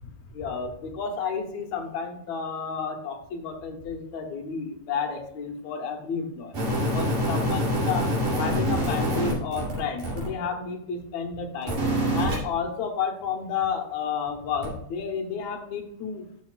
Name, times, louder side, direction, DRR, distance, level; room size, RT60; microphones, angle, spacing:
voice 1, 0.0-8.1 8.4-11.8 12.1-16.2, left 6 dB, 70° left, 3 dB, 2.4 m, -31 dB
sound 1, 6.5-10.3 11.6-12.4 14.6-14.7, equal, 80° right, 4.3 m, -25 dB
12.0 x 6.3 x 2.4 m, 0.75 s
omnidirectional pair, 3.3 m